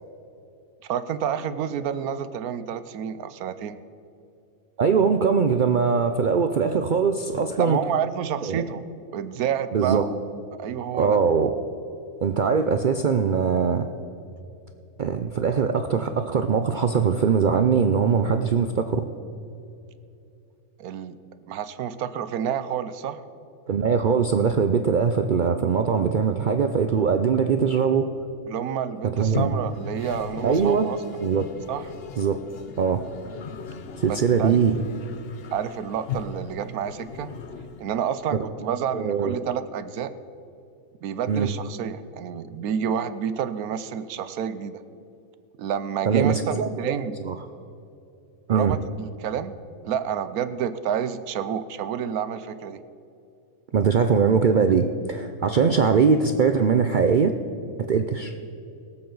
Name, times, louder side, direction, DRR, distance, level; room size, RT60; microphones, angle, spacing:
voice 1, 0.9-3.8 7.6-8.8 9.1-10.2 10.6-11.2 20.8-21.2 21.5-23.2 28.5-31.0 31.7-31.9 34.1-34.6 35.5-37.3 37.8-40.1 41.0-44.8 45.6-47.1 48.5-49.6 49.8-52.8, right 8 dB, 90° right, 12 dB, 1.2 m, -29 dB
voice 2, 4.8-7.8 8.4-8.6 9.7-10.1 10.9-11.5 12.2-13.9 15.0-19.1 23.7-28.1 29.2-29.5 30.4-30.9 31.2-31.5 32.2-32.4 32.8-33.0 34.0-34.8 38.3-38.5 38.9-39.3 41.3-41.5 46.1-46.9 47.2-47.4 48.5-48.8 53.7-57.3 57.9-58.3, right 6 dB, 65° right, 7 dB, 0.4 m, -21 dB
Toilet flush, 29.1-38.2, left 6 dB, 55° left, 0.7 m, -37 dB
22.5 x 7.7 x 3.9 m, 2.8 s
omnidirectional pair, 1.5 m